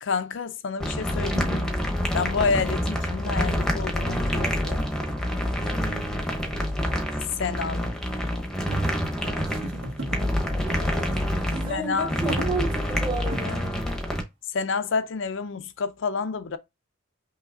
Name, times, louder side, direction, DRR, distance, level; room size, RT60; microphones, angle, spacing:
voice 1, 0.0-1.7 2.1-4.9 7.4-7.9 11.7-12.1 14.5-16.6, left 5 dB, 60° left, 0.5 m, -29 dB
sound 1, 0.8-14.2, equal, 5° left, 0.9 m, -27 dB
voice 2, 5.6-6.1 9.1-9.6 10.6-13.8, right 2 dB, 25° right, 1.2 m, -33 dB
sound 2, 5.8-13.7, right 1 dB, 80° right, 1.7 m, -38 dB
5.6 x 3.2 x 2.5 m
head